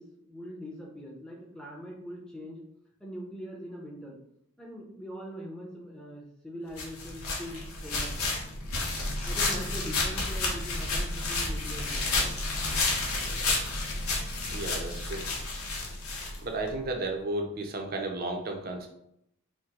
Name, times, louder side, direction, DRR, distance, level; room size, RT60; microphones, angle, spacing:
voice 1, 0.0-2.6 3.0-4.2 4.6-8.1 9.2-12.1, equal, 5° left, -2 dB, 0.7 m, -42 dB
sound 1, 6.8-16.8, left 2 dB, 85° left, 1.0 m, -31 dB
voice 2, 14.5-15.3 16.4-18.9, right 2 dB, 45° right, 3 dB, 0.6 m, -33 dB
4.5 x 2.2 x 3.8 m, 0.75 s
head